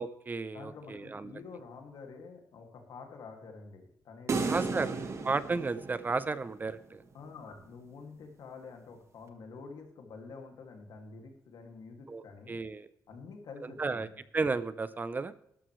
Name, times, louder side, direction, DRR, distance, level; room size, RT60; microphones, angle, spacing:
voice 1, 0.0-1.3 4.4-5.0 5.2-7.0 12.1-12.2 12.5-12.9 13.6-14.1 14.3-15.3, right 4 dB, 25° right, 15 dB, 0.6 m, -33 dB
voice 2, 0.5-4.6 7.1-12.6 13.1-14.2, left 4 dB, 80° left, 3 dB, 2.3 m, -48 dB
sound 1, 4.3-6.7, right 4 dB, 45° right, 1.4 m, -34 dB
12.5 x 12.5 x 3.2 m, 0.73 s
cardioid pair, 125°, 7 cm